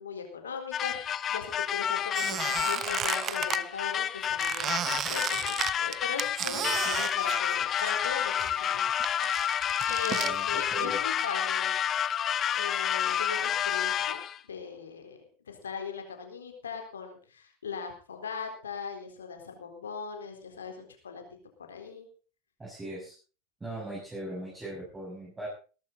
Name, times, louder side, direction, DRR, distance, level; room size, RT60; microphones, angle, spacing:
voice 1, 0.0-8.8 9.9-11.7 12.5-14.2 14.5-15.2 15.4-21.2 21.7-22.1, left 6 dB, 90° left, 4 dB, 4.0 m, -39 dB
sound 1, 0.7-14.4, left 9 dB, 35° left, 0.8 m, -30 dB
Squeak, 2.1-3.6 4.4-8.1 8.4-10.3, right 10 dB, 40° right, 0.6 m, -33 dB
Sliding door, 2.8-6.1, left 1 dB, 5° left, 3.9 m, -49 dB
voice 2, 10.1-11.0 22.6-23.1 23.6-25.5, right 1 dB, 15° right, -4 dB, 6.7 m, -39 dB
18.0 x 13.5 x 3.9 m, 0.37 s
hypercardioid pair, 90°, 0 cm